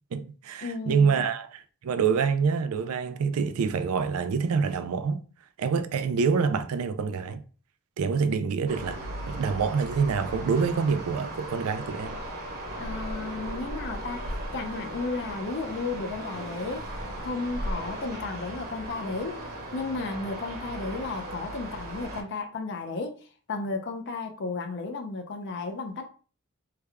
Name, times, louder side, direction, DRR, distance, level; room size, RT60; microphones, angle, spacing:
voice 1, 0.1-5.2 5.6-7.4 8.0-9.0 9.3-12.2, right 5 dB, 70° right, 0.4 m, -26 dB
voice 2, 0.6-1.2 12.8-14.2 14.5-16.8 17.2-19.4 19.7-23.1 23.5-26.0, left 3 dB, 55° left, 0.5 m, -33 dB
sound 1, 8.7-22.2, right 1 dB, 45° right, 0.9 m, -37 dB
3.3 x 2.2 x 3.4 m
head